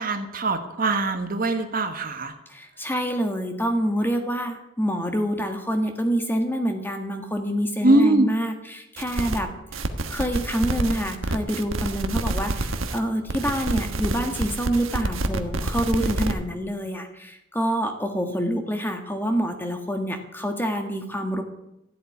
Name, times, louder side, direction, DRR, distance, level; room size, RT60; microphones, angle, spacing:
voice 1, 0.0-2.3 7.8-8.3, right 2 dB, 45° right, 7 dB, 1.3 m, -22 dB
voice 2, 2.5-9.5 10.1-21.4, equal, 10° left, 5 dB, 1.6 m, -26 dB
sound 1, 9.0-9.4 9.7-13.0 13.3-16.3, right 2 dB, 85° right, 1.3 m, -28 dB
13.5 x 8.1 x 9.7 m, 0.87 s
head